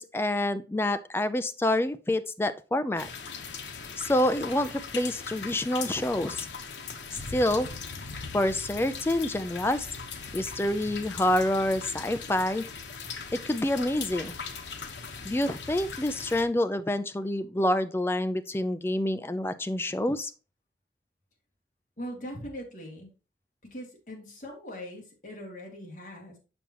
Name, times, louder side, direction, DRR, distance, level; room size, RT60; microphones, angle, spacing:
voice 1, 0.0-3.1 4.0-6.5 7.3-7.7 8.3-9.9 10.3-12.6 13.5-14.3 15.3-20.3, left 1 dB, 15° left, 12 dB, 0.3 m, -27 dB
sound 1, 3.0-16.4, left 5 dB, 90° left, 1.0 m, -39 dB
voice 2, 22.0-23.1 23.6-26.4, equal, 45° left, -1 dB, 2.2 m, -41 dB
7.0 x 6.0 x 2.9 m, 0.33 s
head